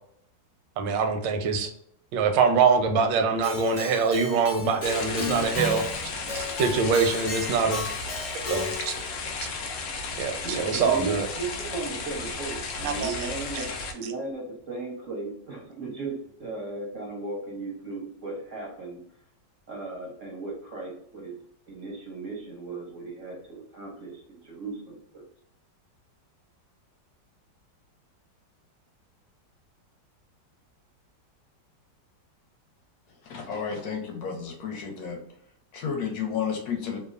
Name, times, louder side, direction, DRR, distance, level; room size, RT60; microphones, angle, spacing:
voice 1, 0.8-1.7 2.1-5.8 6.3-7.8 8.5-8.9 10.2-11.3 12.8-13.1 13.5-13.7, right 5 dB, 85° right, 6 dB, 1.3 m, -24 dB
Keyboard (musical), 3.4-9.1, left 3 dB, 40° left, 0.7 m, -35 dB
sound 1, 4.8-13.9, left 4 dB, 85° left, 0.6 m, -34 dB
voice 2, 10.4-16.1 16.4-19.0 19.7-21.4 21.7-25.3, right 3 dB, 65° right, -2 dB, 0.8 m, -36 dB
voice 3, 33.2-35.2 35.7-37.0, left 7 dB, 60° left, 1 dB, 1.0 m, -32 dB
2.9 x 2.2 x 2.3 m, 0.70 s
omnidirectional pair, 1.9 m